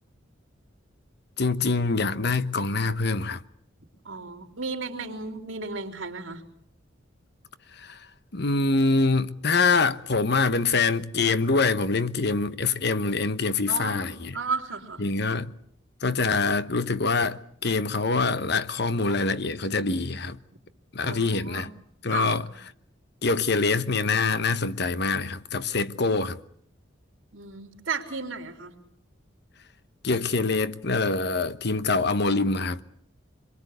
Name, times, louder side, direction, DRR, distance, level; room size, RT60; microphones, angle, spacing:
voice 1, 1.4-3.4 7.7-8.1 8.3-14.4 15.0-15.5 16.0-20.4 20.9-21.7 22.0-22.5 23.2-26.4 30.0-32.8, left 3 dB, 55° left, 1.1 m, -25 dB
voice 2, 4.0-6.4 13.7-15.0 21.0-21.7 22.1-22.3 27.3-28.8, right 4 dB, 85° right, 3.6 m, -34 dB
25.5 x 23.0 x 8.2 m
head